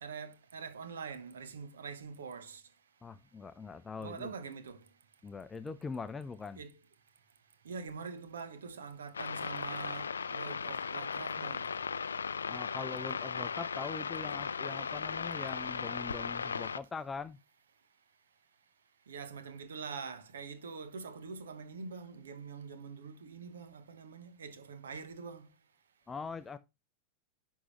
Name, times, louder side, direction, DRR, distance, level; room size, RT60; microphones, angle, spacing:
voice 1, 0.0-2.6 4.0-4.8 6.6-6.8 7.6-11.7 19.1-25.5, right 5 dB, 65° right, 1.0 m, -44 dB
voice 2, 3.0-4.3 5.2-6.6 12.5-17.4 26.1-26.6, left 4 dB, 15° left, 0.5 m, -42 dB
sound 1, 9.1-16.8, left 6 dB, 75° left, 0.4 m, -37 dB
11.0 x 3.7 x 3.1 m
figure-of-eight pair, 90°, 0 cm